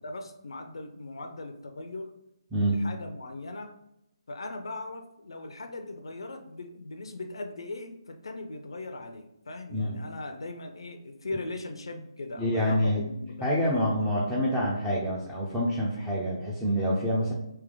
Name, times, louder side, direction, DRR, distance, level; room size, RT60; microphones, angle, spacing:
voice 1, 0.0-2.1 2.6-3.7 4.3-14.2, left 2 dB, 75° left, 5 dB, 0.5 m, -39 dB
voice 2, 12.4-13.0 13.4-17.3, equal, 5° right, -6 dB, 0.6 m, -27 dB
3.4 x 2.8 x 3.7 m, 0.84 s
figure-of-eight pair, 150°, 3 cm